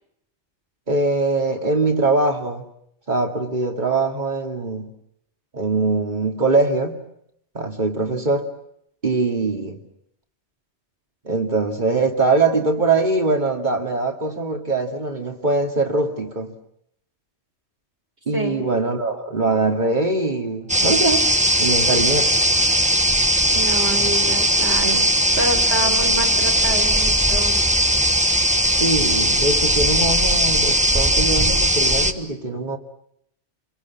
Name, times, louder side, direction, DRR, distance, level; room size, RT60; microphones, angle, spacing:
voice 1, 0.9-2.6 3.1-4.9 5.5-7.0 7.5-8.5 9.0-9.8 11.2-16.5 18.3-21.3 21.6-22.3 28.7-32.8, right 3 dB, 40° right, 3 dB, 2.8 m, -22 dB
sound 1, 20.7-32.1, right 1 dB, 5° right, 1.1 m, -18 dB
voice 2, 23.4-27.6, right 1 dB, 70° right, 3 dB, 5.0 m, -27 dB
29.0 x 22.0 x 7.4 m, 0.73 s
omnidirectional pair, 1.2 m